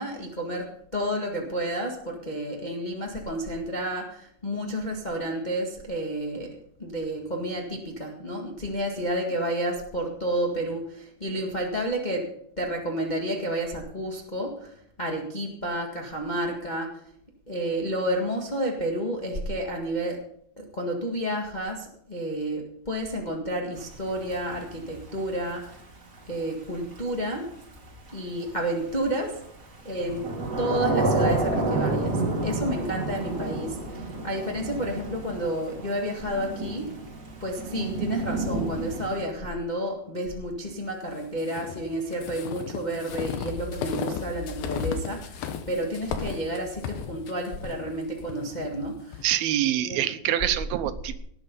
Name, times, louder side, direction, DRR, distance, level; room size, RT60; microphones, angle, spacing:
voice 1, 0.0-6.5 6.8-12.2 12.6-16.9 17.5-20.2 20.6-25.8 26.3-27.5 28.1-29.3 29.8-36.9 37.4-49.2 49.8-50.0 50.4-50.5, right 1 dB, 30° left, -1 dB, 0.8 m, -30 dB
Thunder / Rain, 23.8-39.2, right 2 dB, 30° right, 3.1 m, -30 dB
sound 1, 41.4-49.3, left 7 dB, 80° left, 3.0 m, -35 dB
voice 2, 49.2-51.2, right 12 dB, 90° right, 11 dB, 2.8 m, -25 dB
18.5 x 8.8 x 5.5 m, 0.70 s
omnidirectional pair, 4.2 m